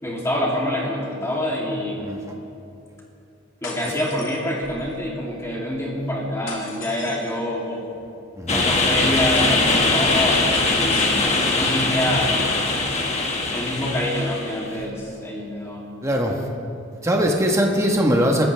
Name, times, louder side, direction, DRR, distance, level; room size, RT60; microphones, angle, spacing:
voice 1, 0.0-2.1 3.6-7.8 8.5-12.6 13.5-15.8, left 1 dB, 15° left, -4 dB, 2.9 m, -26 dB
sound 1, 3.6-4.9 6.5-7.5 10.5-11.7, left 4 dB, 70° left, 3.0 m, -38 dB
voice 2, 8.3-8.7 16.0-16.4 17.0-18.5, equal, 15° right, 0 dB, 1.3 m, -20 dB
sound 2, 8.5-14.7, left 2 dB, 35° left, 1.8 m, -21 dB
28.5 x 14.5 x 3.4 m, 2.8 s
head